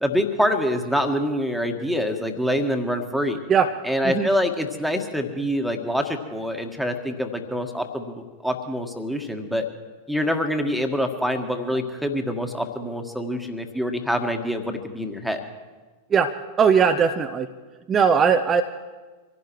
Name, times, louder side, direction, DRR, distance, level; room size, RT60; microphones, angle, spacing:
voice 1, 0.0-3.4 3.8-9.6 10.1-15.4, equal, ahead, 5 dB, 1.6 m, -25 dB
voice 2, 16.1-17.5 17.9-18.6, right 6 dB, 25° right, 6 dB, 0.7 m, -19 dB
26.0 x 16.0 x 3.2 m, 1.3 s
figure-of-eight pair, 90°, 0 cm